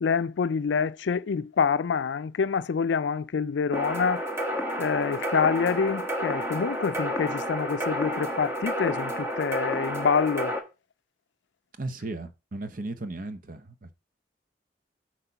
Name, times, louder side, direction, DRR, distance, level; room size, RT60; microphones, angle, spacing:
voice 1, 0.0-4.2 4.8-10.5, left 6 dB, 85° left, 0.4 m, -26 dB
sound 1, 3.7-10.6, equal, 15° right, 1.2 m, -30 dB
voice 2, 11.8-13.9, right 2 dB, 50° right, 0.8 m, -36 dB
7.9 x 3.1 x 5.7 m
head